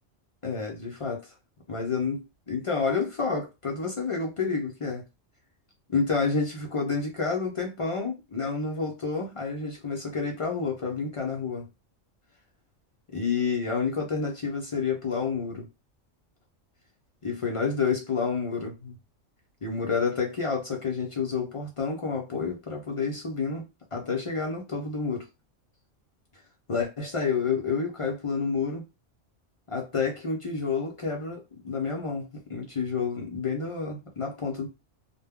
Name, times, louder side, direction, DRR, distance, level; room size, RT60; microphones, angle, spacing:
voice 1, 0.4-1.3 1.7-5.0 5.9-11.7 13.1-15.7 17.2-19.0 19.6-23.6 23.9-25.2 26.7-28.8 29.7-34.7, left 5 dB, 60° left, 0.3 m, -29 dB
2.1 x 2.1 x 3.4 m
omnidirectional pair, 1.3 m